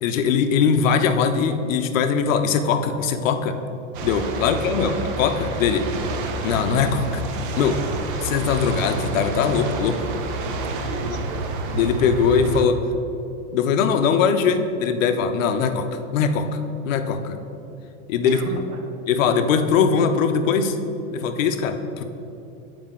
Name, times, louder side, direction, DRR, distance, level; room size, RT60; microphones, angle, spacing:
voice 1, 0.0-3.6 4.0-5.9 6.4-7.2 7.6-7.8 8.2-10.0 11.7-12.8 13.5-16.5 16.8-17.3 18.1-18.4 19.1-20.8 21.1-22.0, left 6 dB, 70° left, 8 dB, 0.7 m, -21 dB
sound 1, 3.9-12.7, right 3 dB, 40° right, 0.5 m, -29 dB
voice 2, 10.9-11.5 18.2-18.8, right 3 dB, 80° right, 3 dB, 1.2 m, -35 dB
7.3 x 5.0 x 3.7 m, 2.9 s
supercardioid pair, 165°, 41 cm